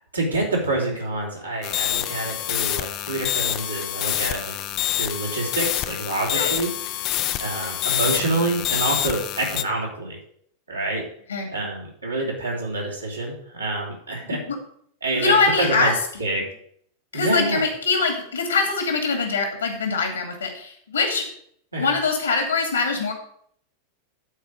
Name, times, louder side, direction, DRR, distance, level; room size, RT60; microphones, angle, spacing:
voice 1, 0.1-4.6 5.0-6.7 7.4-10.2 10.7-11.0 11.5-14.4 15.0-15.9 16.2-16.4 17.1-17.6 21.7-21.9, right 2 dB, 80° right, -3 dB, 3.4 m, -27 dB
sound 1, 1.6-9.6, left 14 dB, 40° left, 0.6 m, -27 dB
voice 2, 15.1-16.4 17.1-21.3 21.8-23.1, left 4 dB, 70° left, 4 dB, 2.4 m, -23 dB
11.0 x 4.8 x 6.6 m, 0.64 s
figure-of-eight pair, 90°, 0 cm